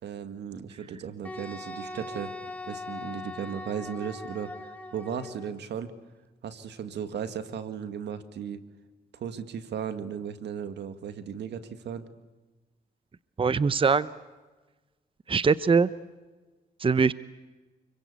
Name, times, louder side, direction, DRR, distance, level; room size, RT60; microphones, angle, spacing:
voice 1, 0.0-2.3 2.7-5.9 6.4-8.6 9.1-12.1, right 7 dB, 80° right, 10 dB, 2.0 m, -36 dB
Wind instrument woodwind instrument, 1.2-5.5, left 2 dB, 10° left, 4.2 m, -40 dB
voice 2, 13.4-14.1 15.3-15.9 16.8-17.1, right 5 dB, 30° right, 16 dB, 0.8 m, -22 dB
29.5 x 23.0 x 8.4 m, 1.2 s
cardioid pair, 75°, 17 cm